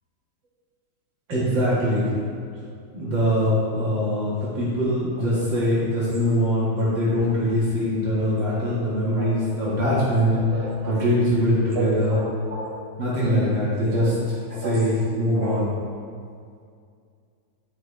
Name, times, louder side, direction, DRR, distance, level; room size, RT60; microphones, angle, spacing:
voice 1, 1.3-2.2 2.9-10.3 10.9-12.2 13.0-14.1 14.6-15.7, equal, 60° right, -9 dB, 2.6 m, -22 dB
voice 2, 9.1-9.5 9.8-10.0 10.4-11.0 11.7-12.2 12.5-12.8 13.2-13.4 13.9-14.1 14.5-14.8 15.3-15.6, right 2 dB, 30° right, -9 dB, 2.6 m, -32 dB
11.0 x 6.0 x 3.3 m, 2.2 s
omnidirectional pair, 2.3 m